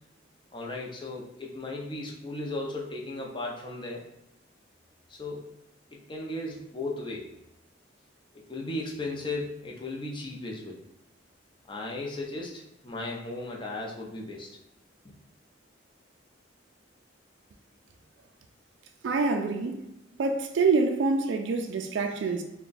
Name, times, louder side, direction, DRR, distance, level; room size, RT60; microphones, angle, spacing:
voice 1, 0.5-4.1 5.1-5.5 5.9-7.3 8.3-10.8 11.7-14.5, left 2 dB, 25° left, 0.6 m, -36 dB
voice 2, 19.0-19.8 20.2-22.4, right 4 dB, 70° right, 0.3 m, -26 dB
3.4 x 2.2 x 3.9 m
head